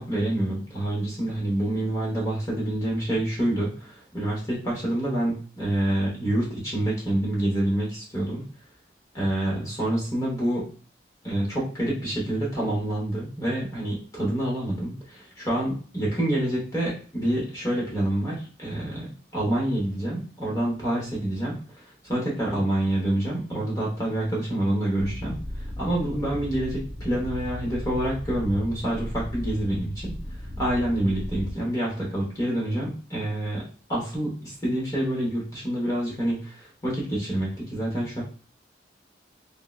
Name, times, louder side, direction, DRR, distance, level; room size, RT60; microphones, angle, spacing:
voice 1, 0.0-8.5 9.1-10.7 11.2-21.6 22.0-25.3 25.8-30.1 30.6-33.6 33.9-38.2, right 1 dB, 20° left, -5 dB, 0.9 m, -27 dB
sound 1, 25.0-31.5, left 1 dB, 20° right, 1.0 m, -35 dB
3.6 x 2.0 x 2.3 m, 0.42 s
head